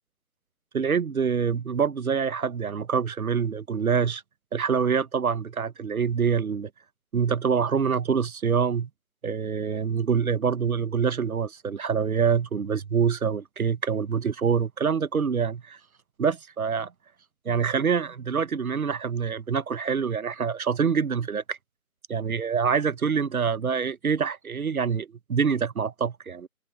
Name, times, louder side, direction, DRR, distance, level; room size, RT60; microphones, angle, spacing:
voice 1, 0.7-4.2 4.5-6.7 7.1-8.9 9.2-15.8 16.2-16.9 17.4-21.6 22.1-26.5, right 6 dB, 75° right, 1.1 m, -25 dB
open air
figure-of-eight pair, 155°, 43 cm